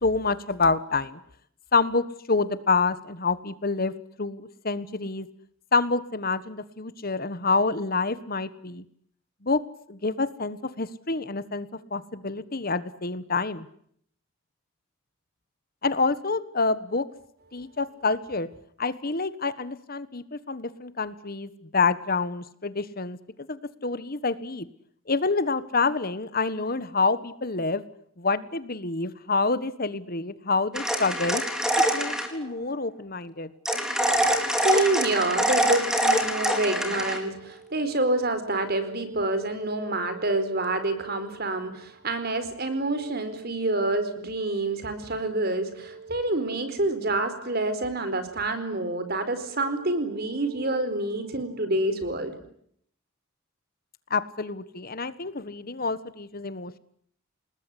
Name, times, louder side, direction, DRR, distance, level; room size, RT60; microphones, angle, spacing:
voice 1, 0.0-1.2 1.7-3.9 4.2-5.3 5.7-8.8 9.4-9.6 9.9-13.7 15.8-17.0 17.5-18.5 18.8-24.7 25.1-27.8 28.2-31.4 31.9-33.5 54.1-56.8, left 4 dB, 45° left, 14 dB, 1.4 m, -27 dB
sound 1, 30.7-32.3 33.7-37.2, right 1 dB, 5° right, 4.1 m, -24 dB
voice 2, 34.1-52.3, right 2 dB, 50° right, 11 dB, 4.5 m, -27 dB
29.0 x 20.5 x 9.9 m, 0.69 s
head